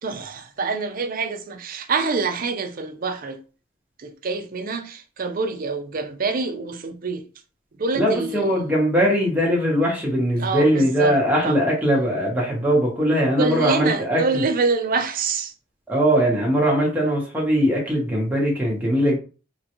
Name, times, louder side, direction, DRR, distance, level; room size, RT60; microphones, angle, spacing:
voice 1, 0.0-3.4 4.0-7.2 7.8-8.7 10.4-11.2 11.4-11.7 13.4-15.5, right 4 dB, 45° right, 0.5 m, -26 dB
voice 2, 7.9-14.4 15.9-19.2, equal, 10° right, 0.9 m, -20 dB
3.6 x 2.2 x 2.9 m
head